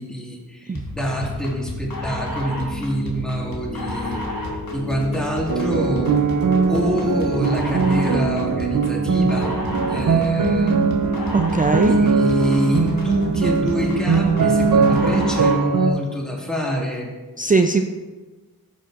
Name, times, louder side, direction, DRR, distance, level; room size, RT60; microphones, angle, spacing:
voice 1, 0.0-4.4 4.7-6.2 6.7-10.8 11.9-17.1, equal, ahead, -2 dB, 1.9 m, -26 dB
sound 1, 0.7-15.7, equal, 65° left, 1.4 m, -29 dB
sound 2, 5.5-15.9, right 5 dB, 60° right, 0.6 m, -20 dB
voice 2, 11.3-11.9 17.4-17.8, right 4 dB, 25° right, 5 dB, 0.4 m, -19 dB
12.0 x 5.3 x 2.5 m, 1.3 s
cardioid pair, 40°, 36 cm